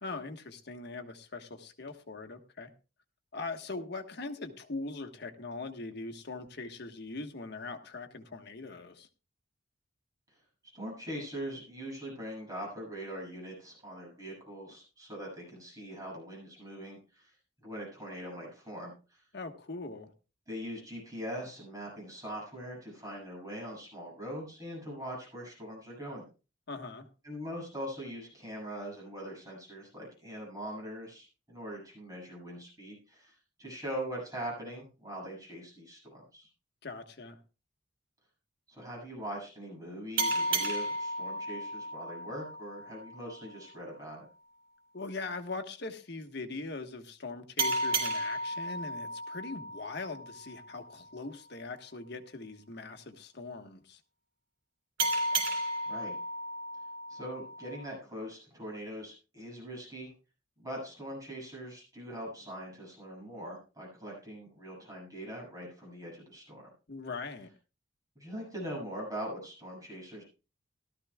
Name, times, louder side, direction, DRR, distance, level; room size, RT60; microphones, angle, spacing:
voice 1, 0.0-2.7 3.3-9.1 19.3-20.1 26.7-27.1 36.8-37.4 44.9-54.0 66.9-67.5, left 3 dB, 60° left, 6 dB, 1.4 m, -41 dB
voice 2, 10.7-17.4 17.6-19.2 20.5-26.2 27.2-36.5 38.7-44.2 55.9-56.1 57.1-60.1 60.6-66.7 68.2-70.2, equal, 20° right, -3 dB, 7.0 m, -42 dB
sound 1, 40.2-43.4 47.6-50.8 55.0-57.9, right 2 dB, 75° right, 3.2 m, -34 dB
17.5 x 13.0 x 2.3 m, 0.32 s
head